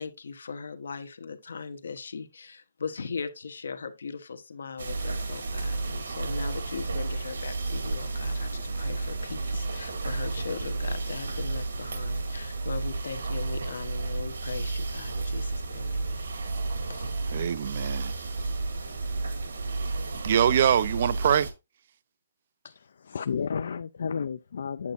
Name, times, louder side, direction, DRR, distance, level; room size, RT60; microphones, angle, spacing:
voice 1, 0.0-16.3 16.9-17.1, left 5 dB, 80° left, 1.2 m, -39 dB
sound 1, 4.8-21.5, right 3 dB, 85° right, 2.0 m, -32 dB
voice 2, 17.3-18.1 20.2-21.5, right 9 dB, 35° right, 0.4 m, -24 dB
voice 3, 22.6-24.9, left 6 dB, 55° left, 0.4 m, -32 dB
8.4 x 8.1 x 2.6 m
hypercardioid pair, 175°, 0 cm